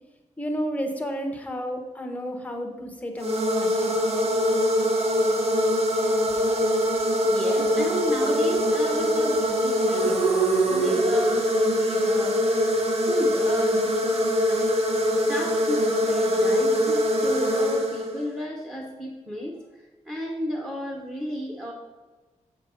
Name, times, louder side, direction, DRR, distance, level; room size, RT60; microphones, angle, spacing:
voice 1, 0.4-4.1, equal, 10° left, 3 dB, 1.0 m, -31 dB
sound 1, 3.2-18.4, equal, 50° right, 1.1 m, -23 dB
voice 2, 7.2-12.5 13.1-14.7 15.3-21.7, equal, 10° right, -2 dB, 1.1 m, -33 dB
7.4 x 5.3 x 5.7 m, 1.3 s
wide cardioid pair, 175°, 13 cm